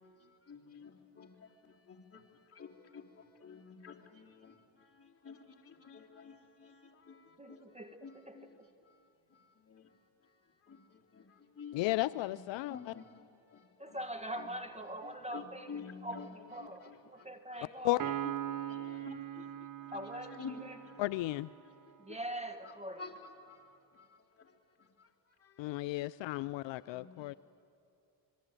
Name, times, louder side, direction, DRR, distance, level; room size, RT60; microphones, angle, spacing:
voice 1, 0.5-2.2 2.5-7.6 8.0-8.6 9.6-9.9 10.7-11.3 11.6-11.8 12.7-13.2 13.5-14.0 15.3-16.3 17.2-17.3 18.7-20.0 20.4-21.0 23.0-23.1 23.5-23.6 23.9-24.1 25.0-25.1 25.4-25.5 26.0-26.4 26.9-27.4, left 5 dB, 30° left, -2 dB, 3.5 m, -50 dB
voice 2, 7.4-8.7 13.8-18.0 19.9-20.8 22.0-23.0, right 1 dB, 15° right, 8 dB, 1.7 m, -43 dB
voice 3, 11.7-12.9 17.8-18.0 21.0-21.5 25.6-27.3, left 18 dB, 70° left, 16 dB, 0.5 m, -34 dB
Piano, 18.0-21.6, right 11 dB, 45° right, 1.1 m, -40 dB
26.0 x 22.5 x 9.1 m, 2.7 s
cardioid pair, 80°, 46 cm